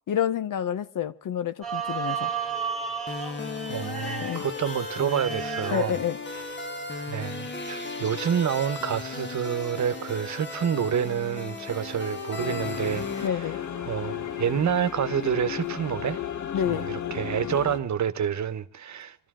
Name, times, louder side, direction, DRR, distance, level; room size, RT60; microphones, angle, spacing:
voice 1, 0.1-2.3 4.2-4.4 5.7-6.2 13.2-13.6 16.5-16.9, left 9 dB, 85° left, 0.9 m, -28 dB
sound 1, 1.6-14.9, right 6 dB, ahead, 2.8 m, -37 dB
sound 2, 3.1-13.3, left 4 dB, 35° left, 1.4 m, -36 dB
voice 2, 3.6-6.0 6.3-6.4 7.1-13.3 13.8-16.2 16.6-16.8 17.1-19.2, right 8 dB, 60° right, 1.1 m, -28 dB
sound 3, 12.4-17.8, left 10 dB, 65° left, 1.3 m, -34 dB
26.0 x 13.5 x 3.7 m
wide cardioid pair, 150°, 32 cm